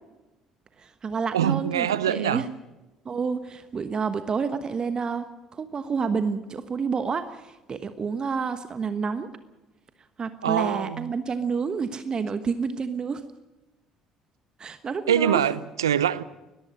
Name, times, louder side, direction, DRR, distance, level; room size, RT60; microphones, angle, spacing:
voice 1, 0.8-2.5 3.0-5.3 5.5-9.3 10.2-13.2 14.6-15.4, right 5 dB, 35° right, 1.2 m, -29 dB
voice 2, 1.3-2.4 10.4-11.1 15.1-16.2, right 9 dB, 85° right, 0.7 m, -24 dB
21.0 x 14.0 x 9.8 m
hypercardioid pair, 55°, 2 cm